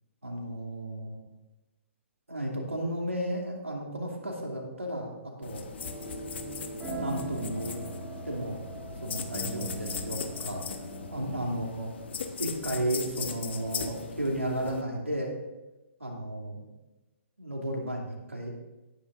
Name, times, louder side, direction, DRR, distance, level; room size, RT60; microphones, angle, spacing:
voice 1, 0.2-1.2 2.3-5.7 6.8-7.8 8.2-8.6 9.0-10.7 11.1-11.9 12.4-15.3 16.0-16.6 17.4-18.5, right 1 dB, 85° right, 0 dB, 2.7 m, -33 dB
sound 1, 5.4-14.8, left 6 dB, 55° left, 1.1 m, -39 dB
sound 2, 5.8-11.4, right 2 dB, 20° right, 2.8 m, -40 dB
17.5 x 9.9 x 2.6 m, 1.1 s
figure-of-eight pair, 125°, 7 cm